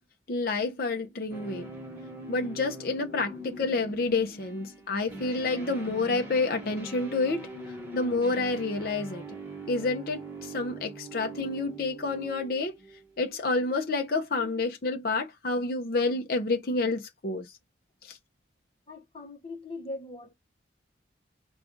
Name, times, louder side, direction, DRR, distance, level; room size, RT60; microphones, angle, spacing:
voice 1, 0.3-1.7 2.3-7.4 7.9-9.2 9.7-12.7 13.2-17.5 18.0-18.2, left 3 dB, 50° left, 0.6 m, -29 dB
sound 1, 1.3-13.2, right 2 dB, 10° right, 1.1 m, -42 dB
voice 2, 18.9-20.3, left 2 dB, 30° left, 1.1 m, -40 dB
4.8 x 2.3 x 3.7 m
head